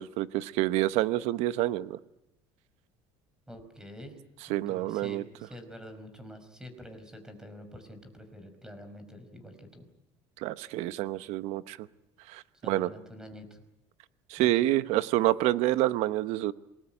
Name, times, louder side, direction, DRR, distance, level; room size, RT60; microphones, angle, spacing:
voice 1, 0.0-2.0 4.5-5.2 10.4-11.8 12.3-12.9 14.3-16.5, right 15 dB, 75° right, 14 dB, 1.0 m, -27 dB
voice 2, 3.5-4.2 4.7-9.8 12.6-13.6 14.4-14.7, equal, 5° right, 8 dB, 5.2 m, -47 dB
26.5 x 20.0 x 9.1 m, 0.92 s
cardioid pair, 130°, 11 cm